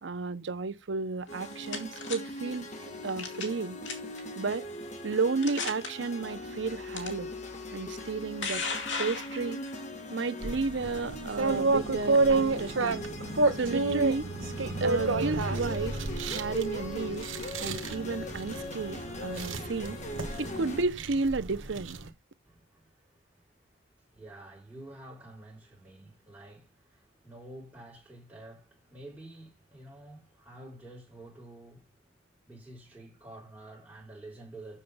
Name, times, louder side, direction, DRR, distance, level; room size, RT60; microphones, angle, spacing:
voice 1, 0.0-3.8 4.4-4.6 5.0-7.3 7.7-8.6 9.0-9.6 10.1-13.0 13.5-14.3 14.8-17.3 17.6-20.0 20.4-22.0, right 4 dB, 65° right, 0.7 m, -32 dB
sound 1, 1.3-2.2 3.2-3.6 3.9-4.2 4.8-4.9 5.4-5.9 7.0-7.1 8.0-9.8, left 5 dB, 70° left, 2.4 m, -35 dB
sound 2, 1.3-20.8, left 1 dB, 40° left, 1.6 m, -40 dB
sound 3, 10.4-22.1, right 3 dB, 90° right, 1.2 m, -30 dB
voice 2, 22.4-34.8, right 1 dB, 5° right, 5.5 m, -49 dB
7.4 x 6.7 x 5.5 m
head